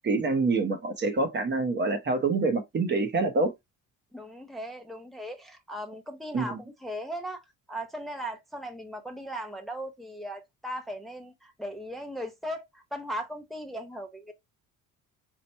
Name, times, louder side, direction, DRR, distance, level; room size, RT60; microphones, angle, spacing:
voice 1, 0.0-3.5 6.3-6.6, right 3 dB, 35° right, 1.1 m, -26 dB
voice 2, 4.1-7.4 7.7-14.3, equal, ahead, 0.8 m, -38 dB
4.6 x 2.5 x 4.3 m
cardioid pair, 115°, 32 cm